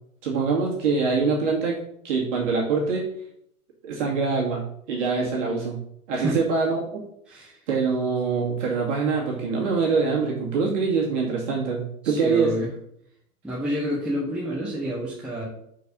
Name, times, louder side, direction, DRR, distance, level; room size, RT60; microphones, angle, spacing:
voice 1, 0.2-1.8 2.0-3.0 3.8-5.8 6.1-7.0 7.3-7.4 7.7-12.5, right 4 dB, 50° right, -3 dB, 2.2 m, -24 dB
voice 2, 7.3-7.6 12.0-12.7 13.4-15.4, equal, ahead, -5 dB, 1.0 m, -29 dB
6.2 x 4.8 x 5.2 m, 0.72 s
hypercardioid pair, 145°, 46 cm